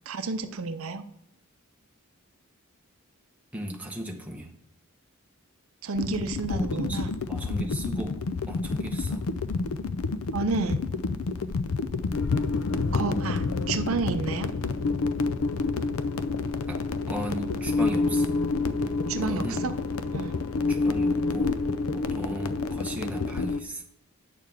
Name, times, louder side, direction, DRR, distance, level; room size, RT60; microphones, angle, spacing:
voice 1, 0.1-1.0 5.8-7.1 10.3-10.8 12.9-14.5 19.1-19.8 20.1-20.4, right 4 dB, 75° right, 9 dB, 0.6 m, -30 dB
voice 2, 3.5-4.5 6.4-9.2 16.7-16.8 17.1-18.3 19.1-19.7 20.7-21.6 21.9-23.8, right 1 dB, 5° right, 0 dB, 1.1 m, -36 dB
sound 1, 5.9-23.6, left 3 dB, 80° left, 0.5 m, -28 dB
9.2 x 6.6 x 3.5 m, 0.83 s
head